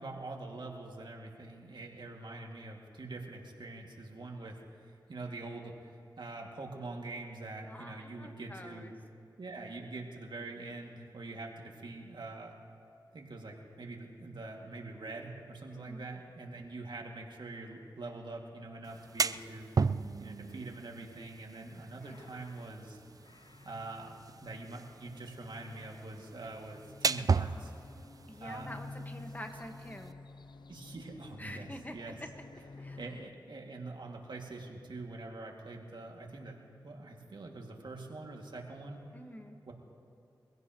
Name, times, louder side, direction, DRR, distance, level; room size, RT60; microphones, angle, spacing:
voice 1, 0.0-8.9 9.4-12.5 13.1-19.7 20.2-23.0 23.6-27.7 28.4-28.7 30.7-32.2 32.5-36.6 36.8-39.0 39.7-39.8, right 2 dB, 65° right, 0 dB, 2.3 m, -44 dB
voice 2, 7.6-8.9 15.7-16.1 22.0-22.2 28.3-30.1 31.4-31.9 32.8-33.0 39.1-39.6, equal, 20° left, 4 dB, 1.5 m, -47 dB
sound 1, 18.8-30.1, right 4 dB, 45° right, 0.4 m, -37 dB
sound 2, 21.7-33.3, left 3 dB, 60° left, 0.5 m, -52 dB
23.5 x 16.5 x 3.1 m, 2.7 s
cardioid pair, 45°, 8 cm